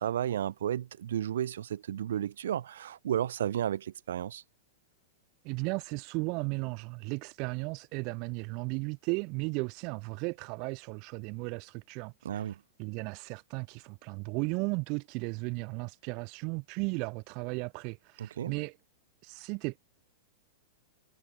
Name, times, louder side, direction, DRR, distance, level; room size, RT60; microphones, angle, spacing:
voice 1, 0.0-4.4 12.2-12.6 18.2-18.5, right 10 dB, 80° right, 6.0 m, -33 dB
voice 2, 5.4-18.8 19.2-19.8, right 31 dB, 45° right, 8.0 m, -35 dB
hypercardioid pair, 125°, 0 cm